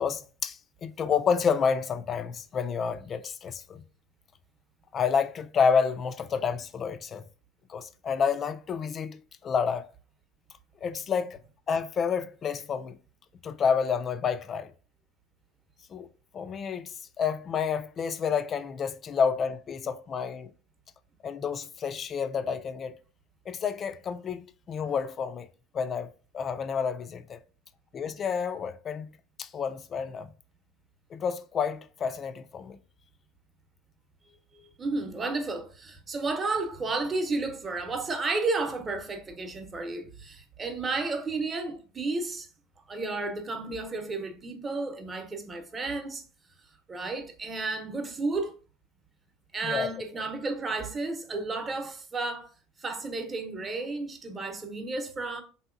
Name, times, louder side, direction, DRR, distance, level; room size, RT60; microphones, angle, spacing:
voice 1, 0.0-3.8 4.9-7.2 7.7-9.9 10.8-11.4 11.7-13.0 13.4-14.7 15.9-16.1 16.3-20.5 21.2-22.9 23.5-25.5 25.7-27.4 27.9-30.3 31.1-32.8 49.6-49.9, left 6 dB, 35° left, 0.3 m, -29 dB
voice 2, 34.5-42.5 42.9-46.2 46.9-48.5 49.5-52.5 52.8-55.4, right 3 dB, 25° right, 0.8 m, -32 dB
3.6 x 2.8 x 2.4 m
supercardioid pair, 90°, 0 cm